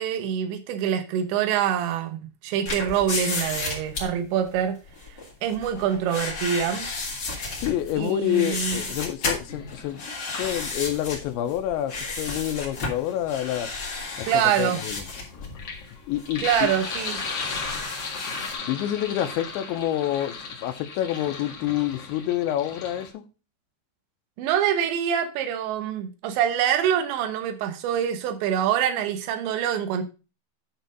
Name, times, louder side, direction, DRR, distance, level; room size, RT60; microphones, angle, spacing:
voice 1, 0.0-4.8 5.4-6.9 8.0-8.8 14.3-14.8 16.4-17.2 24.4-30.0, right 9 dB, 75° right, 3.3 m, -25 dB
sound 1, 2.7-18.5, left 3 dB, 30° left, 2.5 m, -33 dB
voice 2, 7.6-10.0 10.4-13.7 14.2-14.3 14.6-15.0 16.1-16.7 18.7-20.3 20.6-23.2, left 12 dB, 80° left, 3.0 m, -27 dB
Sink (filling or washing), 9.5-11.0 12.2-23.1, left 4 dB, 55° left, 1.7 m, -37 dB
10.0 x 4.5 x 5.2 m
omnidirectional pair, 5.4 m